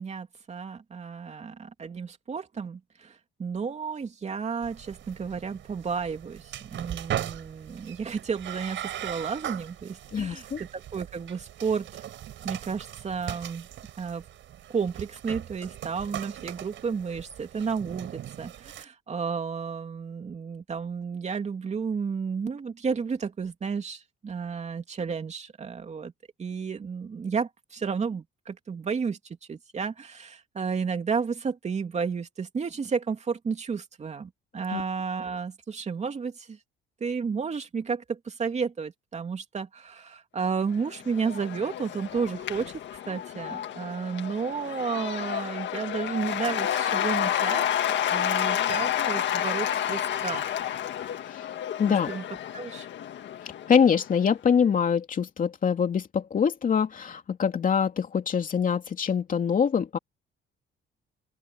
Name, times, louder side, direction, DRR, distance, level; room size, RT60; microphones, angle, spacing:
voice 1, 0.0-12.0 12.4-13.7 14.0-14.2 14.7-26.1 26.4-29.2 29.5-36.6 37.0-42.8 43.1-50.6 51.8-52.2 52.5-52.9, right 5 dB, 35° right, 2.8 m, -32 dB
sound 1, 4.6-18.8, right 11 dB, 65° right, 5.9 m, -39 dB
voice 2, 10.1-10.6 34.7-34.8 51.8-52.1 53.7-60.0, left 7 dB, 40° left, 2.9 m, -24 dB
Cheering / Applause / Crowd, 40.7-54.2, left 10 dB, 65° left, 1.8 m, -30 dB
open air
cardioid pair, 130°, 21 cm